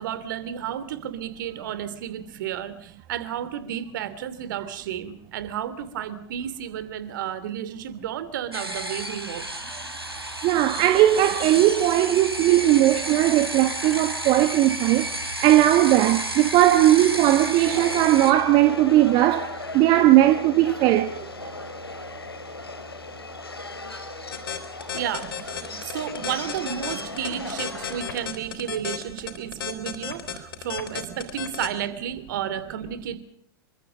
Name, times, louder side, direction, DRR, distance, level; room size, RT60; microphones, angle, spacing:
voice 1, 0.0-9.5 24.9-33.2, right 10 dB, 55° right, 2.9 m, -32 dB
sound 1, 8.5-18.3, right 1 dB, 90° right, 3.7 m, -32 dB
voice 2, 10.4-15.1 15.4-21.5, right 14 dB, 35° right, 1.4 m, -18 dB
Subway metro underground, 17.6-28.2, left 3 dB, 85° left, 3.1 m, -37 dB
sound 2, 24.3-31.7, left 8 dB, 65° left, 3.6 m, -33 dB
28.0 x 24.5 x 5.2 m
figure-of-eight pair, 95°, 13 cm